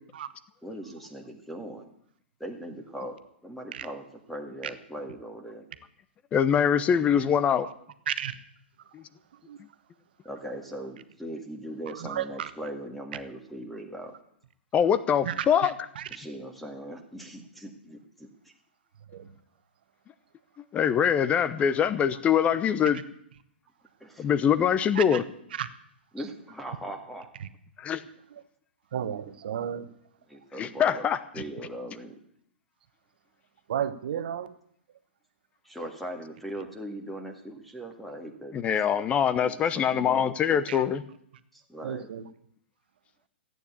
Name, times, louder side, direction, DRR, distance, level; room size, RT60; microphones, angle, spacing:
voice 1, 0.6-1.9 2.4-3.1 3.4-5.6 10.2-14.1 16.1-18.3 24.0-24.3 26.1-27.3 30.3-31.0 31.3-32.1 35.6-38.6 39.4-40.7 41.5-42.1, right 1 dB, ahead, 4 dB, 1.9 m, -40 dB
voice 2, 6.3-7.7 8.9-9.0 14.7-15.7 20.7-23.0 24.2-25.2 27.8-28.0 30.6-31.2 38.5-41.0, left 8 dB, 20° left, 14 dB, 0.9 m, -23 dB
voice 3, 8.1-8.4 8.9-9.0 9.5-9.6 11.9-12.5 15.2-16.1 19.1-19.3 24.9-25.2 25.5-25.7 27.4-27.5 28.3-28.4 28.9-29.9 33.7-34.5 39.9-40.0 40.7-40.8 41.8-42.3, right 9 dB, 60° right, 12 dB, 1.1 m, -33 dB
14.5 x 9.2 x 8.4 m, 0.70 s
figure-of-eight pair, 110°, 6 cm